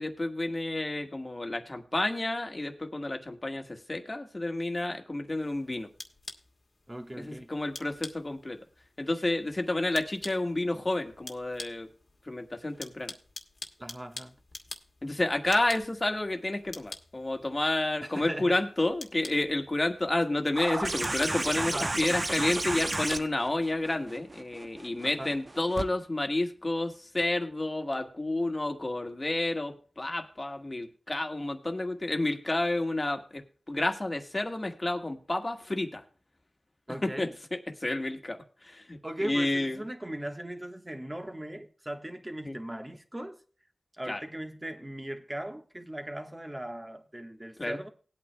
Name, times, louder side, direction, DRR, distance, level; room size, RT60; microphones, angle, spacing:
voice 1, 0.0-5.9 7.2-8.6 9.0-11.9 12.3-13.1 15.0-36.0 37.0-39.0 39.2-39.8 42.4-42.6 44.1-44.2 47.6-47.8, left 2 dB, 35° left, 1.5 m, -30 dB
sound 1, 5.4-24.1, left 2 dB, 60° left, 1.3 m, -48 dB
voice 2, 6.9-7.5 13.8-14.4 18.0-18.6 21.6-22.0 25.0-25.4 36.9-37.3 39.0-43.4 44.0-47.9, right 1 dB, 20° right, 1.2 m, -38 dB
sound 2, 20.6-25.9 27.2-27.3, right 2 dB, 40° right, 0.8 m, -33 dB
19.5 x 8.6 x 2.2 m
cardioid pair, 50°, 0 cm